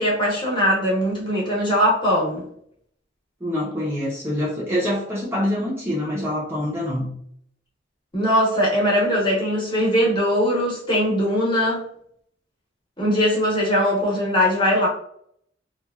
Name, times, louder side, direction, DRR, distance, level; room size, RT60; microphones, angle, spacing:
voice 1, 0.0-2.4 8.1-11.8 13.0-14.9, equal, 25° left, -5 dB, 0.9 m, -20 dB
voice 2, 3.4-7.1, left 1 dB, 15° right, -6 dB, 0.5 m, -25 dB
2.8 x 2.2 x 2.3 m, 0.66 s
head